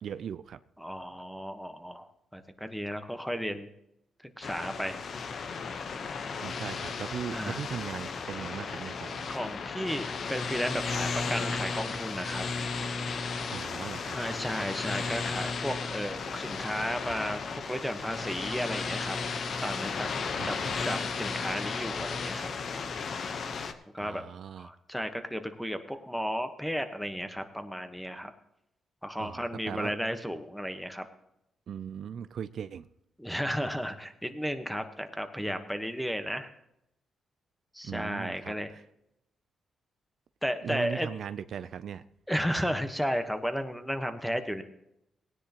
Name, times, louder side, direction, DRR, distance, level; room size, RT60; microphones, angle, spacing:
voice 1, 0.0-0.6 6.4-9.3 13.5-14.2 20.4-20.8 24.0-24.7 29.2-29.9 31.7-32.9 37.8-38.8 40.6-42.0, right 8 dB, 65° right, 13 dB, 0.4 m, -39 dB
voice 2, 0.8-2.1 2.3-3.7 4.4-5.0 7.3-7.6 9.3-12.4 14.1-19.2 19.6-20.1 20.5-20.6 20.8-22.5 23.9-24.2 24.6-28.3 29.0-31.0 33.2-36.5 37.7-38.7 40.4-41.1 42.3-44.6, equal, ahead, 8 dB, 1.2 m, -33 dB
sound 1, 4.4-23.7, left 5 dB, 60° left, 1.0 m, -34 dB
18.0 x 10.0 x 3.0 m, 0.80 s
cardioid pair, 75°, 0 cm